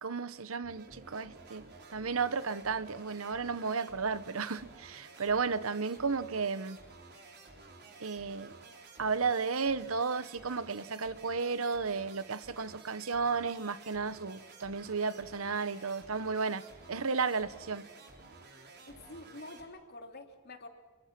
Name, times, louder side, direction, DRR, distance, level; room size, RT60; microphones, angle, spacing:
voice 1, 0.0-1.6 1.9-6.8 8.0-8.6 9.0-17.8, right 5 dB, 70° right, 15 dB, 1.0 m, -33 dB
sound 1, 0.6-19.6, right 3 dB, 50° right, 4.7 m, -53 dB
voice 2, 18.9-20.7, left 2 dB, 50° left, 5 dB, 3.1 m, -47 dB
29.0 x 23.5 x 6.1 m, 1.3 s
head